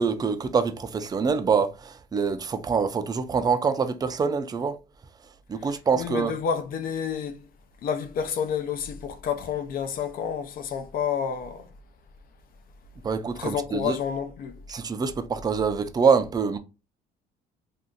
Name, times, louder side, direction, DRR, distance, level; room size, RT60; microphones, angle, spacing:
voice 1, 0.0-4.8 5.5-6.3 13.0-14.0 14.7-16.6, right 5 dB, 25° right, 0.4 m, -25 dB
voice 2, 5.9-7.4 7.8-11.7 13.4-14.5, left 7 dB, 60° left, 0.6 m, -29 dB
2.7 x 2.4 x 3.7 m
cardioid pair, 110°, 17 cm